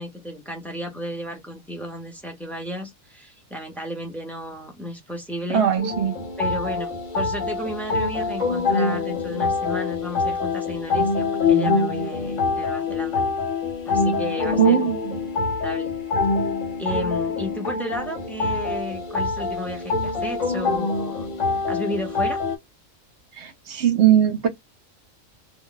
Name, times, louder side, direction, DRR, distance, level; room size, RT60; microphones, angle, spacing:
voice 1, 0.0-5.6 6.4-13.2 13.9-14.9 15.6-15.9 16.8-21.3 21.7-22.4, equal, ahead, 0.7 m, -33 dB
voice 2, 5.5-6.3 14.6-15.2 23.4-24.5, right 9 dB, 60° right, 0.9 m, -20 dB
sound 1, 5.8-22.6, left 4 dB, 70° left, 1.3 m, -25 dB
Mallet percussion, 8.8-12.2, left 17 dB, 50° left, 0.7 m, -37 dB
2.6 x 2.1 x 3.8 m
omnidirectional pair, 1.4 m